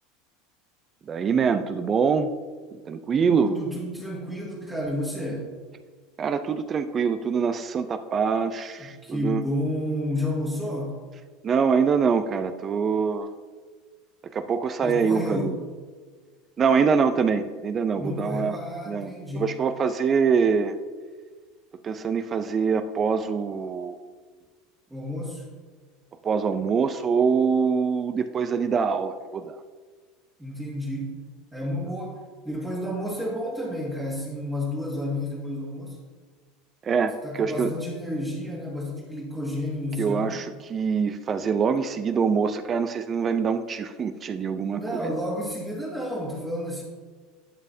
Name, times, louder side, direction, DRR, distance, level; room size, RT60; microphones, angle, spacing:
voice 1, 1.1-2.3 2.9-3.5 6.2-9.4 11.4-13.3 14.3-15.5 16.6-18.6 18.9-20.7 21.8-23.9 26.2-29.6 36.8-37.7 40.0-45.1, right 6 dB, 35° right, 10 dB, 0.4 m, -24 dB
voice 2, 3.2-5.5 8.8-11.0 14.8-15.6 18.0-19.5 24.9-25.4 30.4-31.2 31.5-36.0 37.2-40.4 44.8-46.8, left 1 dB, 10° right, -5 dB, 1.7 m, -31 dB
11.5 x 5.3 x 2.7 m, 1.5 s
hypercardioid pair, 95°, 0 cm